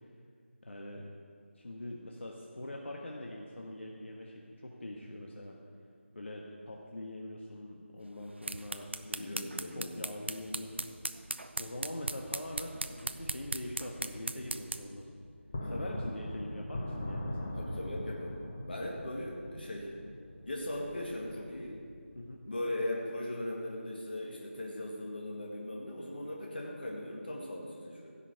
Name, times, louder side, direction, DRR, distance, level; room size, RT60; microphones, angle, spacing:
voice 1, 0.6-1.1 1.6-5.6 6.1-11.0 11.6-15.2 15.6-17.5 22.1-22.4, left 1 dB, 65° left, -1 dB, 1.4 m, -43 dB
sound 1, 8.2-15.0, right 2 dB, 60° right, 0.6 m, -39 dB
voice 2, 9.2-10.0 15.6-15.9 17.5-20.0 20.5-21.8 22.5-28.1, left 1 dB, 45° left, -3 dB, 2.0 m, -39 dB
sound 2, 12.4-22.3, left 1 dB, 15° left, 0.8 m, -42 dB
16.0 x 5.9 x 8.2 m, 2.3 s
figure-of-eight pair, 175°, 7 cm